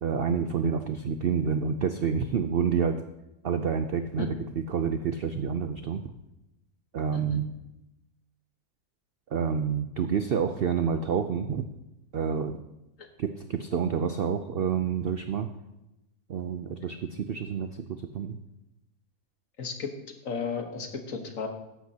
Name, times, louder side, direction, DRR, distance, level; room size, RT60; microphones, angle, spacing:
voice 1, 0.0-3.0 3.4-6.1 6.9-7.5 9.3-11.6 12.1-12.6 13.2-15.5 16.3-18.4, right 7 dB, 70° right, 8 dB, 0.5 m, -28 dB
voice 2, 19.6-19.9 20.2-21.5, left 5 dB, 60° left, 5 dB, 1.6 m, -34 dB
14.0 x 10.5 x 2.8 m, 0.93 s
omnidirectional pair, 1.6 m